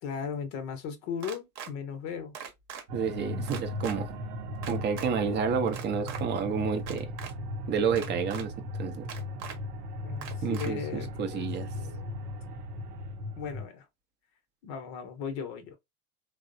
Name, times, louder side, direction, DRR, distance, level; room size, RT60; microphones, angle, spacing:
voice 1, 0.0-2.3 10.0-11.5 11.7-12.2 13.4-13.9 14.6-15.8, left 6 dB, 45° left, 0.7 m, -37 dB
sound 1, 1.2-1.7 2.3-2.8 3.5-4.0 4.6-5.1 5.7-6.2 6.8-7.3 8.0-8.4 9.1-9.6 10.2-10.7, right 8 dB, 45° right, 0.9 m, -41 dB
voice 2, 2.9-4.2 4.7-7.1 7.7-9.1 10.4-11.7, right 6 dB, 25° right, 0.5 m, -30 dB
sound 2, 2.9-13.7, left 1 dB, 80° right, 0.7 m, -37 dB
3.0 x 2.0 x 2.5 m
hypercardioid pair, 80°, 46 cm